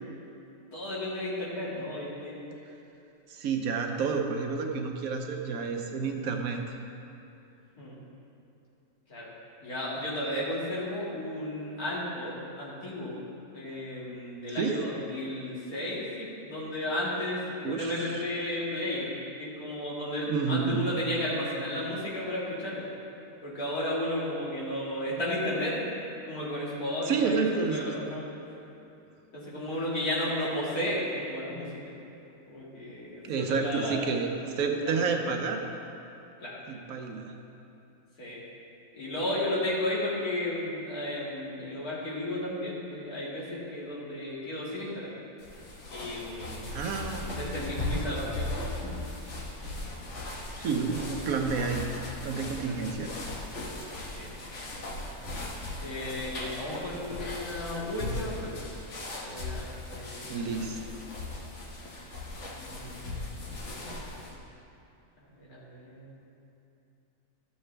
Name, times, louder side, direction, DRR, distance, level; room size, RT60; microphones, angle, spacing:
voice 1, 0.7-2.4 7.8-7.9 9.1-9.3 9.6-13.1 13.5-22.9 23.4-25.9 26.3-27.4 27.7-28.2 29.3-31.7 32.5-34.0 34.9-35.3 36.4-36.6 38.2-38.4 38.9-45.1 45.9-46.7 47.4-48.5 54.1-54.3 55.8-58.5 59.1-60.6 62.5-63.2 65.4-66.2, left 1 dB, 85° left, -7 dB, 2.6 m, -33 dB
voice 2, 3.3-6.8 14.6-14.8 17.6-18.2 20.3-20.8 27.0-28.0 33.3-35.7 36.7-37.3 46.7-47.4 50.6-51.9 52.2-53.1 60.3-61.0, right 5 dB, 75° right, 3 dB, 1.2 m, -30 dB
sound 1, 45.4-64.4, left 2 dB, 55° left, 1.4 m, -38 dB
13.0 x 7.0 x 3.3 m, 2.8 s
omnidirectional pair, 1.5 m